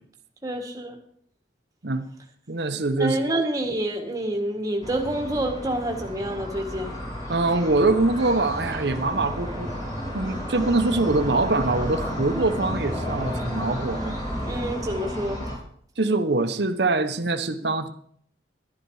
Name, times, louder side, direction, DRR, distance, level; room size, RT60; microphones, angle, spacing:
voice 1, 0.4-1.0 3.0-7.0 14.4-15.4, right 1 dB, 20° right, 3 dB, 1.8 m, -27 dB
voice 2, 2.5-3.2 7.3-9.7 10.1-14.2 16.0-17.9, right 2 dB, 65° right, 9 dB, 1.0 m, -24 dB
sound 1, 4.8-15.6, equal, 25° left, 3.6 m, -32 dB
11.5 x 11.0 x 4.8 m, 0.62 s
head